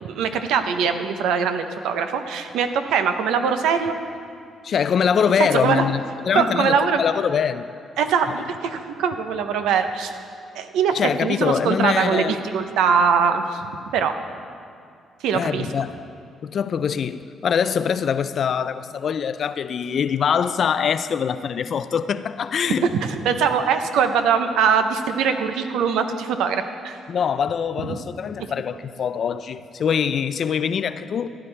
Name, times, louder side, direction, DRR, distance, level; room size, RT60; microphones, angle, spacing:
voice 1, 0.0-4.0 5.4-5.8 6.3-7.0 8.0-10.1 10.5-11.0 11.2-13.7 13.9-14.1 15.2-15.7 23.0-27.0 27.8-28.0, right 6 dB, 90° right, 0.6 m, -22 dB
voice 2, 4.6-7.7 10.9-12.4 15.3-16.0 16.4-22.9 27.1-31.3, left 7 dB, 55° left, 0.4 m, -23 dB
15.0 x 9.8 x 3.3 m
cardioid pair, 90°, 0 cm